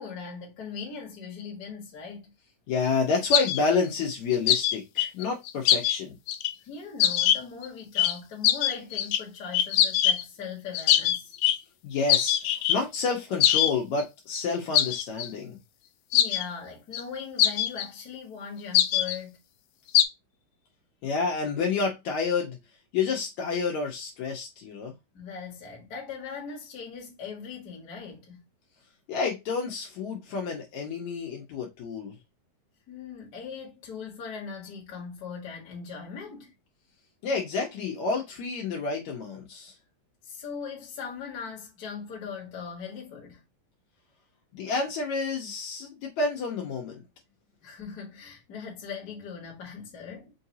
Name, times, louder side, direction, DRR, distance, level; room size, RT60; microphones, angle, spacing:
voice 1, 0.0-2.3 6.6-11.3 16.1-19.4 25.1-28.5 32.9-36.5 40.2-43.4 47.6-50.3, left 6 dB, 35° left, 1.6 m, -40 dB
voice 2, 2.7-6.2 11.8-15.6 21.0-22.6 22.9-24.9 29.1-32.2 37.2-39.7 44.5-47.0, left 4 dB, 65° left, 2.2 m, -29 dB
sound 1, 3.3-3.6 4.3-6.0 6.3-6.5 7.0-7.7 8.0-8.2 8.4-9.2 9.5-10.2 10.8-11.6 12.1-12.8 13.4-13.7 14.0-14.1 14.4-14.5 14.7-15.3 16.1-16.4 16.9-17.0 17.4-17.9 18.8-19.2 20.0-20.1, left 11 dB, 90° left, 2.1 m, -22 dB
5.7 x 2.7 x 2.7 m
omnidirectional pair, 3.7 m